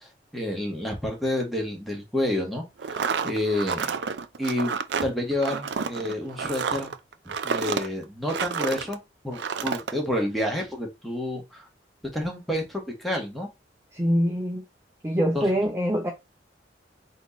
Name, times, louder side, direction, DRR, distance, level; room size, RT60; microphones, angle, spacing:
voice 1, 0.0-4.0 4.4-6.9 7.2-9.0 9.2-11.7 12.1-13.5 15.3-15.5, left 1 dB, ahead, 1.2 m, -29 dB
sound 1, 2.8-9.0 9.3-9.9, right 6 dB, 70° right, 0.4 m, -30 dB
voice 2, 13.9-14.6 15.0-16.1, equal, 15° right, 0.5 m, -24 dB
4.4 x 2.7 x 4.2 m
head